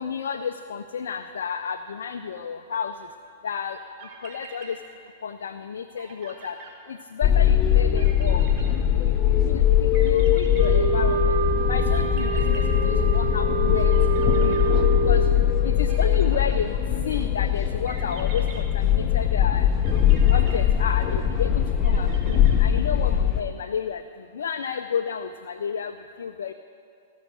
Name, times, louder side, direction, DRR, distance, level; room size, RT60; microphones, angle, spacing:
voice 1, 0.0-2.9 3.4-3.8 4.2-4.8 5.2-6.6 6.9-11.4 11.7-13.9 14.3-14.6 15.0-15.2 15.6-19.7 20.3-24.0 24.3-25.9 26.2-26.5, left 7 dB, 75° left, 8 dB, 0.4 m, -31 dB
sound 1, 4.0-5.3 5.6-5.7 6.0-7.4 7.9-9.4 9.9-11.3 11.9-13.6 13.9-15.3 15.9-17.1 17.9-19.3 19.8-21.4 21.8-23.0, right 4 dB, 45° right, 2.0 m, -45 dB
sound 2, 7.2-23.4, left 10 dB, 30° left, 0.9 m, -21 dB
sound 3, 10.6-15.5, right 7 dB, 75° right, 2.1 m, -27 dB
16.0 x 6.4 x 6.3 m, 2.4 s
hypercardioid pair, 115°, 0 cm